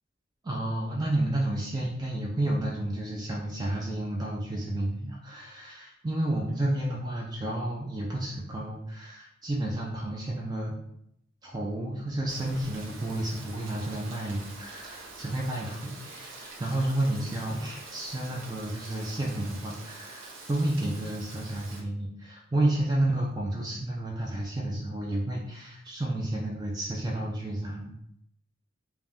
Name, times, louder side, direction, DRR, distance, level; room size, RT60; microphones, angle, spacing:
voice 1, 0.4-10.8 11.4-27.9, right 1 dB, 20° right, -2 dB, 0.3 m, -31 dB
Rain, 12.3-21.8, right 3 dB, 80° right, 0.6 m, -46 dB
2.5 x 2.2 x 3.4 m, 0.74 s
head